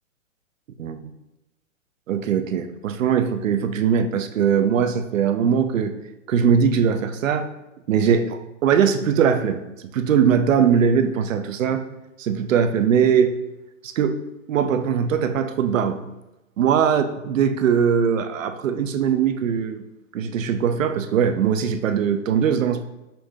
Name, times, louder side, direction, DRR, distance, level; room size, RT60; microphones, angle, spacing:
voice 1, 2.1-5.9 6.3-7.5 7.9-9.6 9.9-11.8 12.2-13.4 13.8-14.2 14.5-16.0 16.6-19.8 20.1-22.8, right 7 dB, 70° right, 9 dB, 0.6 m, -20 dB
5.5 x 2.7 x 3.4 m, 0.98 s
hypercardioid pair, 140°, 40 cm